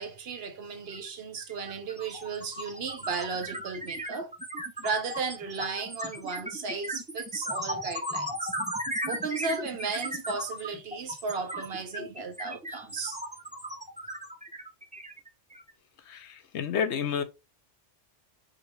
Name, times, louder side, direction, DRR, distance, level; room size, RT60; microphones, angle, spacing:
voice 1, 0.0-4.3 4.8-8.5 9.1-13.2, right 4 dB, 60° right, 0.9 m, -35 dB
sound 1, 0.9-1.1 1.4-15.7, equal, 10° right, 0.5 m, -36 dB
voice 2, 16.1-17.2, left 7 dB, 75° left, 0.9 m, -30 dB
5.1 x 2.5 x 3.0 m
omnidirectional pair, 1.2 m